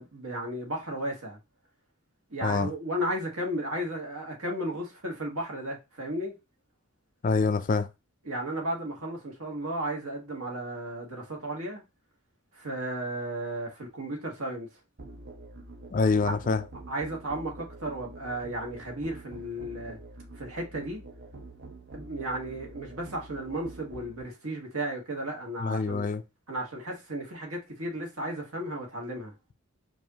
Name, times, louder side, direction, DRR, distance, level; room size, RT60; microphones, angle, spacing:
voice 1, 0.0-1.4 2.3-6.4 8.2-11.8 12.5-14.7 16.2-16.3 16.9-20.0 20.3-21.0 21.9-26.0 26.5-29.3, right 1 dB, 70° right, 1.5 m, -34 dB
voice 2, 2.4-2.7 7.2-7.9 15.9-16.6 25.6-26.2, left 4 dB, 35° left, 0.4 m, -25 dB
Musical instrument, 15.0-24.2, right 2 dB, 50° right, 0.8 m, -46 dB
4.7 x 2.6 x 2.8 m
head